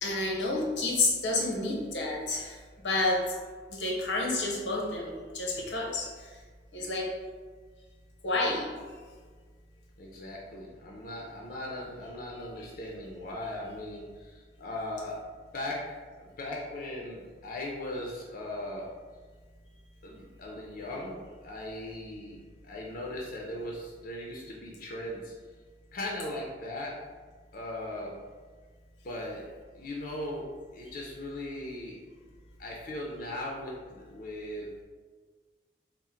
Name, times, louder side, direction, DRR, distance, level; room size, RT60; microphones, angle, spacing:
voice 1, 0.0-2.6 2.8-3.4 3.7-6.3 6.7-7.1 8.2-8.7, left 2 dB, 85° left, -1 dB, 0.8 m, -29 dB
voice 2, 10.0-15.2 15.5-15.8 16.2-18.9 20.0-22.4 22.6-25.3 25.9-26.9 27.5-28.1 29.0-29.4 29.7-30.5 30.7-32.0 32.6-34.7, left 1 dB, 55° left, -3 dB, 0.5 m, -38 dB
3.6 x 2.1 x 4.3 m, 1.5 s
head